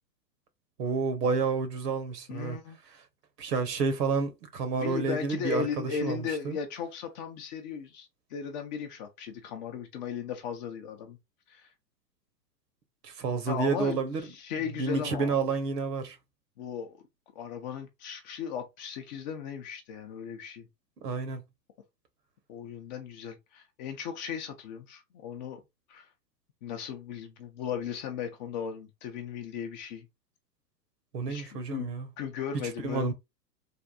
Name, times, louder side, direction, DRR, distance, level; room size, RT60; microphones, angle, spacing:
voice 1, 0.8-2.6 3.4-6.6 13.0-14.2 14.8-16.2 21.0-21.4 31.1-32.1 32.8-33.1, right 4 dB, 70° right, 1.2 m, -30 dB
voice 2, 2.3-2.8 4.8-11.2 11.5-11.7 13.5-15.4 16.6-17.0 17.3-20.7 22.5-25.6 25.9-26.1 26.6-30.1 31.3-31.9 32.2-33.1, left 7 dB, 30° left, 0.5 m, -37 dB
3.5 x 2.5 x 2.5 m
hypercardioid pair, 120°, 50 cm